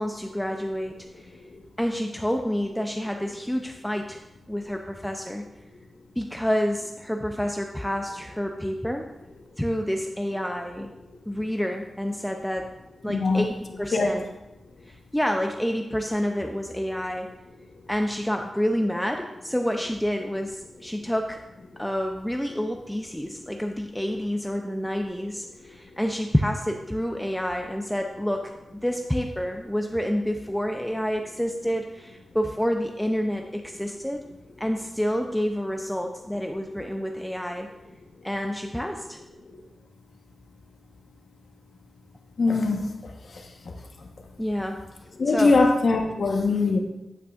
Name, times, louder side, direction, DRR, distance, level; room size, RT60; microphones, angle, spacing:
voice 1, 0.0-1.3 1.8-4.2 4.5-5.5 6.2-9.0 9.6-10.9 11.3-12.7 13.0-14.2 14.9-17.3 17.9-21.4 21.8-34.2 34.6-37.7 38.2-39.2 44.4-44.8 45.3-45.6, equal, 5° left, 3 dB, 0.5 m, -28 dB
voice 2, 1.3-1.7 13.1-13.5 13.9-14.1 21.7-21.8 25.6-25.8 39.5-39.6 42.4-44.1 45.2-46.8, left 3 dB, 60° left, 3 dB, 1.1 m, -23 dB
9.2 x 8.3 x 2.4 m, 0.96 s
wide cardioid pair, 105°, 0 cm